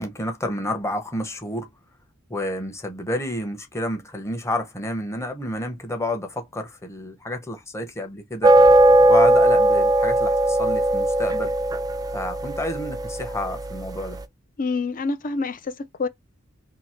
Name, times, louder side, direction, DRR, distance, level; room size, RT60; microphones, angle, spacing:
voice 1, 0.0-1.7 2.3-8.5 9.1-11.5 12.1-14.2, left 1 dB, 15° left, 0.8 m, -30 dB
sound 1, 8.4-13.9, right 1 dB, 15° right, 0.3 m, -18 dB
voice 2, 14.6-16.1, left 4 dB, 40° left, 0.5 m, -27 dB
2.9 x 2.7 x 4.3 m
head